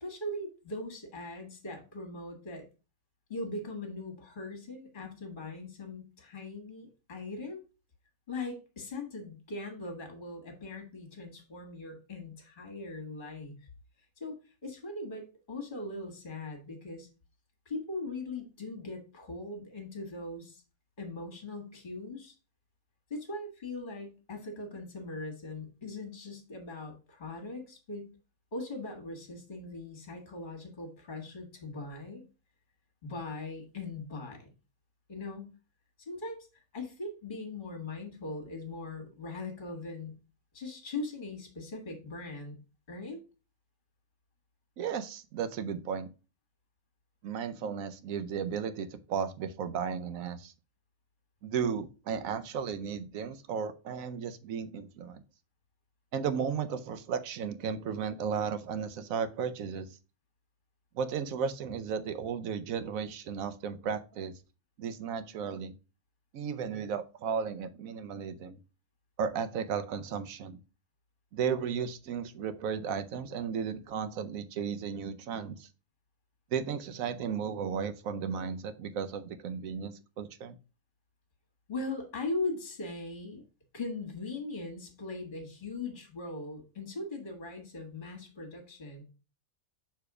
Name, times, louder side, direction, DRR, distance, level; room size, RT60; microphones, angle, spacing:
voice 1, 0.0-2.7 3.3-7.6 8.3-13.6 14.2-17.1 17.7-20.6 21.0-22.4 23.1-28.1 28.5-32.2 33.0-34.5 35.1-35.5 36.0-36.5 36.7-40.1 40.5-42.6 42.9-43.2 81.7-83.4 83.7-89.0, left 2 dB, 35° left, 4 dB, 1.7 m, -40 dB
voice 2, 44.8-46.1 47.2-50.5 51.4-55.2 56.1-59.9 60.9-64.3 64.8-65.7 66.3-68.6 69.2-70.6 71.3-75.7 76.5-80.6, right 7 dB, 75° right, 11 dB, 1.1 m, -34 dB
6.8 x 3.4 x 4.7 m, 0.32 s
omnidirectional pair, 1.5 m